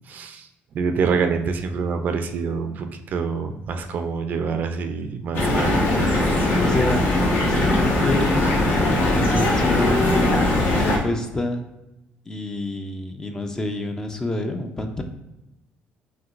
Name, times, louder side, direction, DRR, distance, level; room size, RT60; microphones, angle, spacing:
voice 1, 0.1-0.5 0.7-6.6, right 5 dB, 50° right, 7 dB, 0.4 m, -26 dB
sound 1, 5.3-11.0, left 1 dB, 65° left, 1.2 m, -20 dB
voice 2, 6.6-7.0 7.4-8.6 9.1-11.6 12.3-15.0, left 2 dB, 15° left, 5 dB, 0.4 m, -27 dB
5.8 x 2.7 x 2.5 m, 0.92 s
cardioid pair, 125°, 4 cm